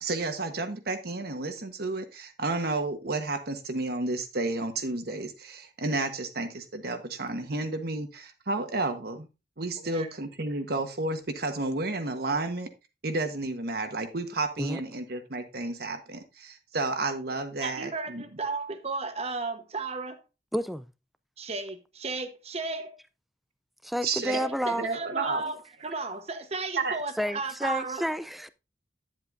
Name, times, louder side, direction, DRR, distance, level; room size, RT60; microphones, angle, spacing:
voice 1, 0.0-9.3 9.6-12.7 13.0-18.2 24.0-24.4 24.6-25.4 26.8-27.0, right 2 dB, 60° right, 1.2 m, -31 dB
voice 2, 9.8-10.1 17.6-20.2 21.4-22.9 24.2-28.1, right 3 dB, 35° right, 1.0 m, -34 dB
voice 3, 20.5-20.9 23.8-24.9 27.2-28.5, equal, ahead, 0.4 m, -30 dB
10.5 x 7.5 x 2.6 m
head